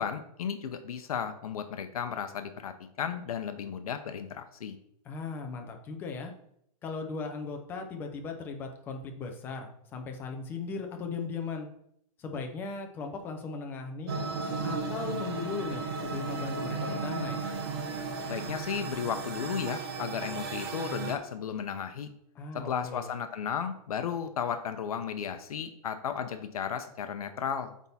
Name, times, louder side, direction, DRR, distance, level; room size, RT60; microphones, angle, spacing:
voice 1, 0.0-4.8 18.2-22.1 22.5-27.7, left 7 dB, 75° left, 8 dB, 0.7 m, -34 dB
voice 2, 5.0-6.3 6.8-11.7 12.2-14.2 14.6-17.4 22.3-23.1, left 4 dB, 10° left, 4 dB, 0.6 m, -37 dB
sound 1, 14.1-21.2, right 4 dB, 40° right, 1.1 m, -35 dB
8.3 x 3.6 x 4.1 m, 0.73 s
hypercardioid pair, 170°, 19 cm